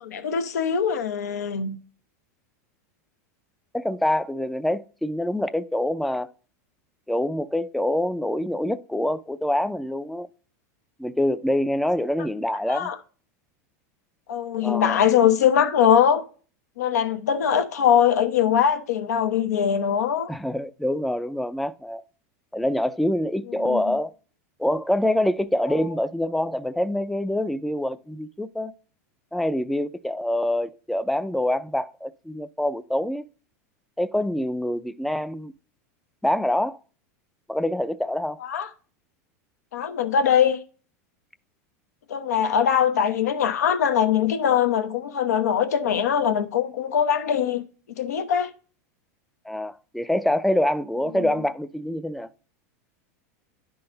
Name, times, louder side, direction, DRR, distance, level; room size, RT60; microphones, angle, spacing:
voice 1, 0.0-1.8 12.7-13.0 14.3-16.2 16.8-20.3 23.6-23.8 38.4-38.7 39.7-40.6 42.1-47.6 48.0-48.5 51.1-51.3, left 8 dB, 90° left, 0.9 m, -22 dB
voice 2, 3.7-6.3 7.1-10.3 11.0-12.9 14.6-15.0 20.3-22.0 22.5-24.1 24.6-28.7 29.3-33.2 34.0-35.5 36.2-36.8 37.5-38.4 49.5-52.3, left 1 dB, ahead, 0.3 m, -25 dB
10.5 x 3.8 x 3.8 m
supercardioid pair, 125°, 9 cm